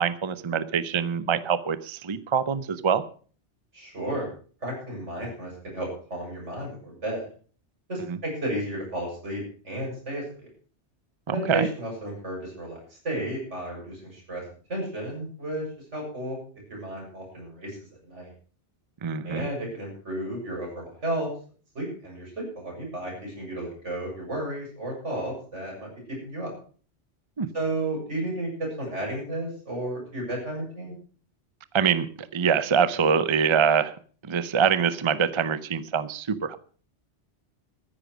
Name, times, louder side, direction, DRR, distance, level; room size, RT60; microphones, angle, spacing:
voice 1, 0.0-3.0 8.1-8.2 11.3-11.7 19.0-19.4 27.4-27.5 31.7-33.9 34.2-36.6, right 6 dB, 30° right, 14 dB, 0.7 m, -24 dB
voice 2, 3.7-4.3 4.6-7.3 7.9-10.5 11.3-14.4 14.7-15.6 15.9-16.4 16.7-17.8 18.0-18.3 19.2-21.3 21.7-25.9 26.2-26.5 27.5-30.9, right 1 dB, 85° right, -1 dB, 7.8 m, -33 dB
14.0 x 10.5 x 6.2 m, 0.43 s
omnidirectional pair, 1.2 m